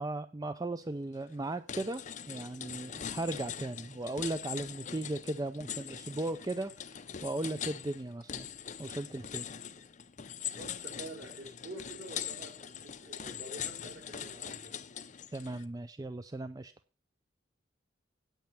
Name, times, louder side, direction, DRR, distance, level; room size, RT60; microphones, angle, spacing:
voice 1, 0.0-7.0 7.2-8.5 8.8-9.5 15.3-16.7, right 2 dB, 20° right, 11 dB, 0.4 m, -37 dB
sound 1, 1.1-1.3 1.7-15.6, left 8 dB, 40° left, 0.6 m, -42 dB
voice 2, 10.5-14.7, right 1 dB, 60° right, -1 dB, 4.3 m, -47 dB
9.1 x 8.7 x 5.7 m, 0.36 s
head